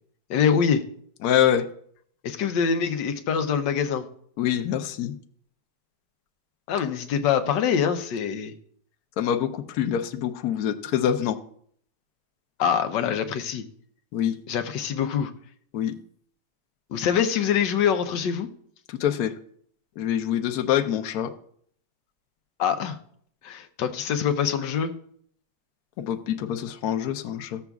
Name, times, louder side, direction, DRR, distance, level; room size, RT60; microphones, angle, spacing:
voice 1, 0.3-0.8 2.2-4.0 6.7-8.5 12.6-13.6 14.5-15.3 16.9-18.5 22.6-23.0 23.4-24.9, left 7 dB, 85° left, 8 dB, 1.4 m, -24 dB
voice 2, 1.2-1.6 4.4-5.1 9.2-11.4 14.1-14.3 15.7-15.9 18.9-19.3 20.0-21.3 26.0-27.6, left 10 dB, 70° left, 7 dB, 1.1 m, -25 dB
15.0 x 7.0 x 2.3 m, 0.62 s
omnidirectional pair, 1.9 m